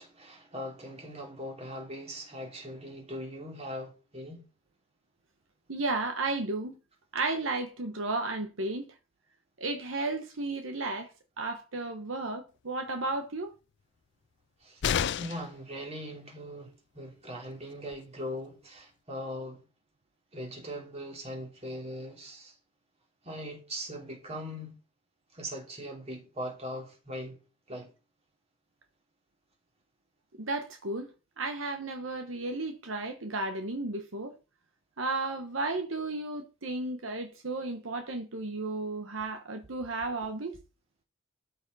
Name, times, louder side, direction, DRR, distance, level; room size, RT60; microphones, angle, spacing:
voice 1, 0.0-4.4 14.6-14.8 15.2-19.6 20.3-22.5 23.2-24.8 25.3-27.4 27.7-27.9, equal, 30° right, 3.2 m, -40 dB
voice 2, 5.7-6.8 7.1-8.9 9.6-11.1 11.4-13.5 30.4-31.1 31.4-34.4 35.0-40.6, right 2 dB, 75° right, 1.2 m, -33 dB
sound 1, 14.8-15.6 17.5-17.6 17.9-18.0, left 8 dB, 60° left, 0.4 m, -29 dB
13.0 x 6.5 x 4.2 m
head